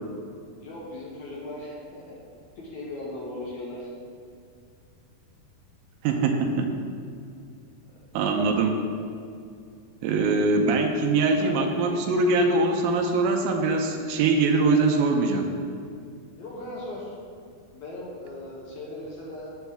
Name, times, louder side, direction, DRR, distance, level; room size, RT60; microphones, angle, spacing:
voice 1, 0.6-2.2 2.6-3.9 7.9-8.0 11.2-11.9 16.4-17.2 17.7-19.5, left 1 dB, 70° left, -4 dB, 1.9 m, -38 dB
voice 2, 6.0-6.7 8.1-8.8 10.0-15.5, right 3 dB, 80° right, 2 dB, 2.4 m, -22 dB
8.0 x 7.1 x 3.4 m, 2.4 s
omnidirectional pair, 4.3 m